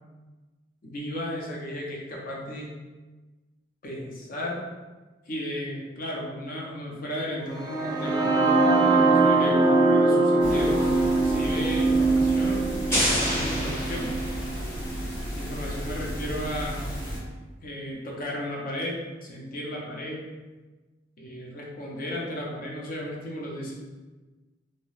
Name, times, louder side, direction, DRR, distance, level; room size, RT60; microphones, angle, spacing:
voice 1, 0.8-2.7 3.8-4.6 5.3-14.1 15.3-16.9 17.6-20.3 21.2-23.7, equal, 45° left, -2 dB, 0.6 m, -34 dB
sound 1, 7.5-15.4, right 3 dB, 20° right, 0.3 m, -22 dB
sound 2, 10.4-17.2, equal, 65° left, 0.9 m, -34 dB
sound 3, 12.9-14.7, equal, 15° left, 0.8 m, -28 dB
2.7 x 2.1 x 3.1 m, 1.2 s
head